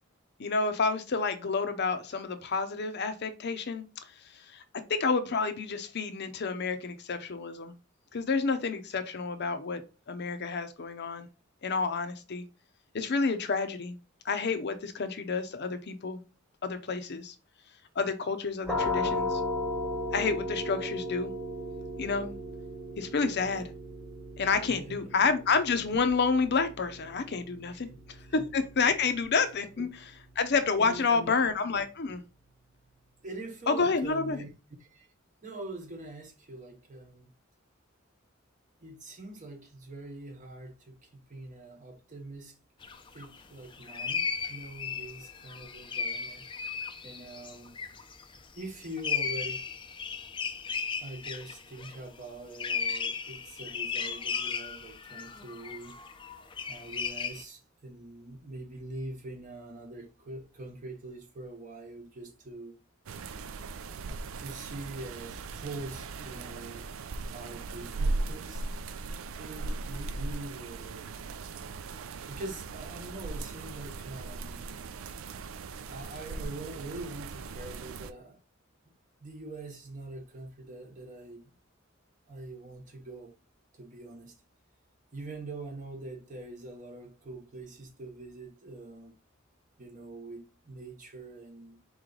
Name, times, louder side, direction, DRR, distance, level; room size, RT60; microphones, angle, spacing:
voice 1, 0.4-3.8 4.5-4.6 4.9-7.8 8.1-9.8 10.1-11.3 11.6-12.4 12.9-13.9 14.2-16.2 16.6-17.3 18.0-19.4 20.1-21.3 22.0-22.3 23.0-23.6 24.4-27.9 28.3-29.9 30.4-32.2 33.7-34.4, left 4 dB, 55° left, 0.7 m, -29 dB
sound 1, 18.6-30.2, left 1 dB, ahead, 1.0 m, -36 dB
voice 2, 24.7-25.1 27.9-28.0 28.3-28.5 29.8-29.9 30.8-31.5 33.2-34.5 34.8-35.1 35.4-37.3 38.8-42.6 43.1-46.5 47.0-47.8 48.6-49.6 51.0-56.0 56.7-62.8 64.4-66.9 67.2-68.6 69.4-71.1 72.3-74.7 75.9-78.4 79.2-81.5 82.3-83.4 83.7-84.4 85.1-89.1 89.8-91.8, right 2 dB, 40° right, 0.9 m, -44 dB
sound 2, 42.8-43.4 43.7-52.0 52.5-57.4, left 6 dB, 25° left, 0.4 m, -36 dB
sound 3, 63.1-78.1, right 3 dB, 80° right, 0.4 m, -38 dB
4.2 x 3.1 x 3.8 m
head